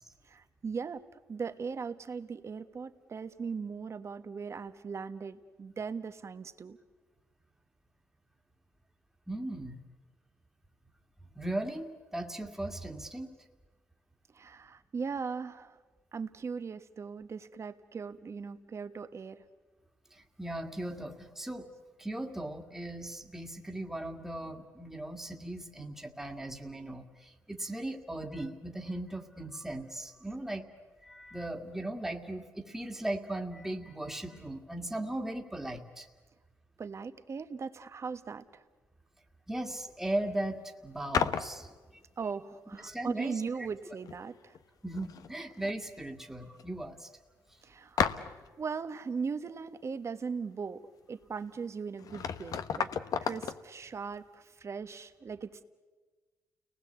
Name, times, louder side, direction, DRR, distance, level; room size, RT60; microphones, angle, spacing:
voice 1, 0.3-1.0 1.3-6.8 14.3-15.7 16.1-19.4 36.8-38.6 42.2-44.6 47.6-48.2 48.6-50.8 51.1-52.9 53.2-55.6, right 5 dB, 45° right, 11 dB, 1.4 m, -39 dB
voice 2, 9.3-9.8 11.4-13.3 20.4-21.7 22.0-30.7 31.0-36.1 39.5-41.7 42.8-43.7 44.8-47.1, right 1 dB, 5° right, 3 dB, 2.1 m, -38 dB
sound 1, 41.1-41.6 43.6-43.7 44.0-44.6 44.9-45.7 46.0-46.1 46.6-46.7 48.0-48.5 51.5-51.6 52.0-53.6, left 7 dB, 65° left, 1.0 m, -33 dB
30.0 x 19.5 x 8.2 m, 1.3 s
supercardioid pair, 70°, 7 cm